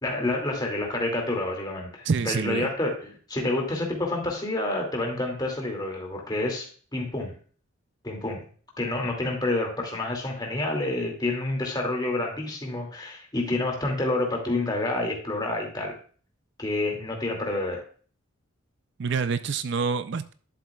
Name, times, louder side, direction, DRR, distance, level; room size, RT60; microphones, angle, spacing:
voice 1, 0.0-7.3 8.0-8.4 8.8-15.9 16.6-17.8, left 2 dB, 20° left, 1 dB, 2.3 m, -28 dB
voice 2, 2.0-2.7 19.0-20.3, right 5 dB, 55° right, 12 dB, 0.4 m, -27 dB
11.5 x 7.5 x 2.3 m, 0.42 s
head